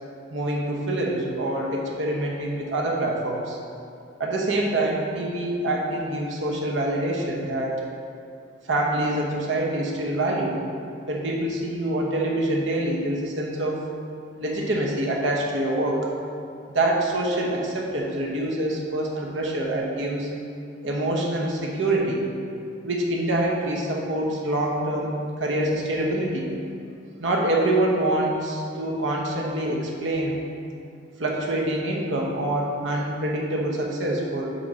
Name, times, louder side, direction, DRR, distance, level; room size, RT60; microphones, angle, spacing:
voice 1, 0.3-3.6 4.2-7.8 8.6-10.6 11.1-13.8 14.4-16.1 16.7-20.3 20.8-22.2 22.8-26.5 27.2-30.4 31.2-34.5, right 1 dB, 85° right, -2 dB, 1.1 m, -25 dB
8.2 x 2.8 x 6.1 m, 2.4 s
head